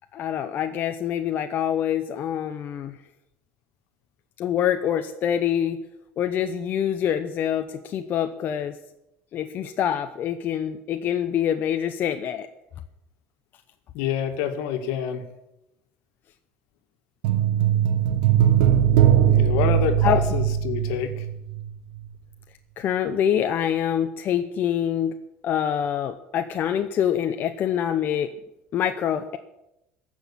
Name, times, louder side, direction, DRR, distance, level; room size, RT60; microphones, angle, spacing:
voice 1, 0.1-3.0 4.4-5.8 6.2-8.8 9.3-12.5 18.5-19.4 20.0-20.2 22.8-25.1 25.4-28.3 28.7-29.4, left 9 dB, 50° left, 7 dB, 0.8 m, -25 dB
voice 2, 13.9-15.2 19.3-21.3, left 8 dB, 80° left, 7 dB, 1.8 m, -27 dB
sound 1, 17.2-21.7 22.0-22.1, right 10 dB, 85° right, 1.4 m, -20 dB
15.5 x 6.3 x 10.0 m, 0.89 s
supercardioid pair, 115°, 4 cm